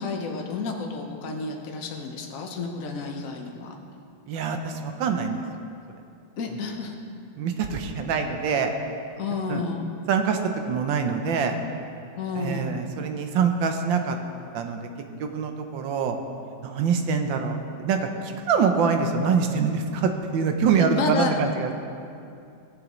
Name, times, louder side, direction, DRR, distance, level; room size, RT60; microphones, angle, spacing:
voice 1, 0.0-3.8 6.4-6.9 9.2-9.9 12.2-12.7 20.8-21.3, left 4 dB, 50° left, 2 dB, 1.1 m, -31 dB
voice 2, 4.3-5.4 6.5-6.6 7.4-8.7 9.5-9.6 10.1-11.6 12.3-14.2 14.5-14.9 15.2-16.2 16.6-21.7, right 5 dB, 75° right, 5 dB, 1.4 m, -25 dB
17.0 x 7.6 x 3.1 m, 2.5 s
omnidirectional pair, 2.2 m